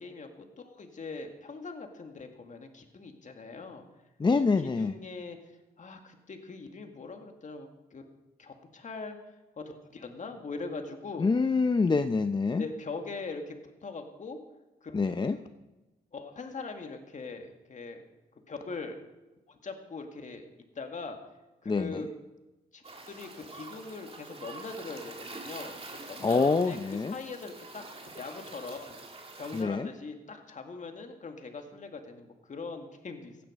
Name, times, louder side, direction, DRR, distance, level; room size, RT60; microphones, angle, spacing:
voice 1, 0.0-3.9 4.6-5.4 5.8-8.0 8.4-9.2 9.6-11.3 12.6-14.4 14.8-15.1 16.1-18.0 18.5-19.0 19.5-20.4 20.8-21.2 21.6-22.1 22.7-27.8 28.2-29.0 29.4-33.4, left 4 dB, 50° left, 5 dB, 2.1 m, -41 dB
voice 2, 4.2-4.9 11.2-12.6 14.9-15.4 21.7-22.0 26.2-27.2 29.5-29.9, left 4 dB, 25° left, 9 dB, 0.6 m, -26 dB
sound 1, 22.8-29.6, right 3 dB, 35° right, 2.4 m, -46 dB
15.5 x 10.5 x 5.1 m, 1.1 s
cardioid pair, 60°, 17 cm